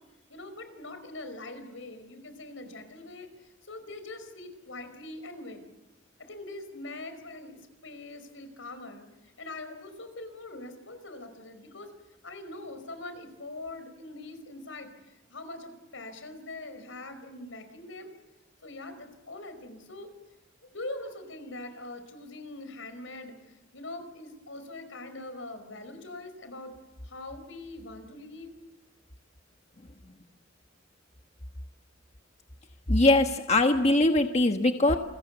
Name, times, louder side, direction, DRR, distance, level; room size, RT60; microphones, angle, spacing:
voice 1, 0.3-3.3 3.7-5.6 6.2-9.0 9.4-11.9 12.2-14.9 15.3-18.1 18.6-20.1 20.7-23.3 23.7-26.7 27.0-28.6, left 2 dB, 85° left, 9 dB, 5.1 m, -42 dB
voice 2, 32.9-35.0, left 2 dB, 35° left, 5 dB, 1.3 m, -22 dB
29.0 x 22.5 x 8.3 m, 0.99 s
head